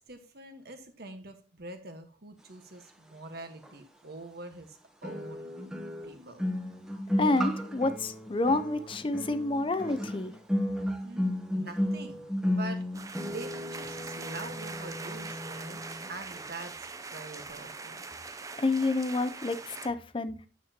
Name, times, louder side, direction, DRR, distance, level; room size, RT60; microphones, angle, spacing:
voice 1, 0.1-5.5 6.0-6.4 8.8-8.9 11.0-12.8 13.3-15.8 16.1-16.8 17.1-18.0, right 2 dB, 60° right, 7 dB, 1.4 m, -44 dB
sound 1, 3.6-3.7 5.0-16.1 16.4-16.7, left 1 dB, 5° right, 0.9 m, -34 dB
voice 2, 7.2-10.3 18.6-20.4, left 2 dB, 30° left, 11 dB, 0.5 m, -29 dB
sound 2, 12.9-19.9, right 4 dB, 20° right, 0.5 m, -42 dB
9.2 x 7.4 x 2.9 m, 0.35 s
head